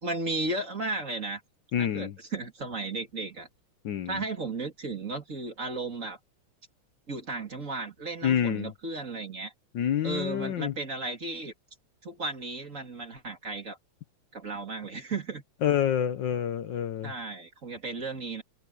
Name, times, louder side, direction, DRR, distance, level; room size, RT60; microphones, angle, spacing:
voice 1, 0.0-1.4 1.8-3.5 4.1-6.2 7.1-9.5 10.0-11.5 12.0-13.8 14.3-15.4 17.0-18.4, right 3 dB, 40° right, 3.0 m, -34 dB
voice 2, 1.7-2.2 3.8-4.2 8.2-8.7 9.7-10.7 15.6-17.1, left 9 dB, 65° left, 1.5 m, -27 dB
omnidirectional pair, 2.2 m